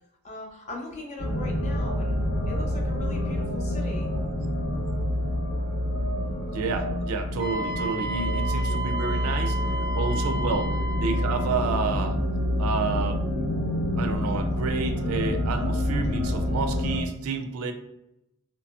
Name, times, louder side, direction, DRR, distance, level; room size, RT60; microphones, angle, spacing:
voice 1, 0.2-2.2 2.5-4.1 10.4-10.5, left 2 dB, 30° left, -1 dB, 0.5 m, -39 dB
sound 1, 1.2-17.0, left 1 dB, 80° left, 1.3 m, -27 dB
voice 2, 6.5-12.2 12.6-13.3 14.0-17.7, right 4 dB, 90° right, 7 dB, 0.4 m, -30 dB
Wind instrument woodwind instrument, 7.4-11.5, right 2 dB, 20° right, 0.4 m, -33 dB
2.8 x 2.6 x 2.3 m, 0.87 s
head